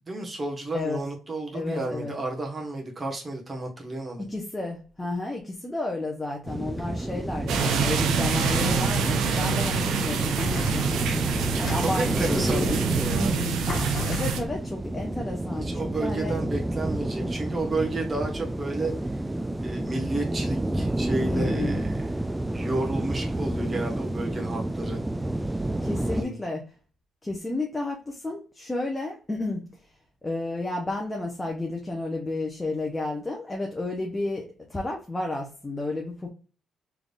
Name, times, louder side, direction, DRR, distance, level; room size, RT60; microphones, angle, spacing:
voice 1, 0.1-4.3 11.8-13.4 15.5-18.9 19.6-22.1 22.5-25.0 26.0-26.3, right 2 dB, 30° right, 1 dB, 1.5 m, -31 dB
voice 2, 1.5-2.1 4.3-13.6 14.1-16.4 21.2-21.8 25.8-26.6 27.2-29.7 30.2-36.3, left 2 dB, 15° left, 0 dB, 0.8 m, -32 dB
sound 1, 6.4-26.2, right 1 dB, 10° right, 0.3 m, -30 dB
sound 2, 6.5-7.9 8.3-8.9 9.3-9.8 10.1-12.3 13.2-13.3 13.7-14.9, left 2 dB, 50° left, 1.3 m, -36 dB
sound 3, 7.5-14.4, right 5 dB, 85° right, 0.6 m, -26 dB
3.7 x 3.4 x 2.5 m, 0.37 s
cardioid pair, 90°, 0 cm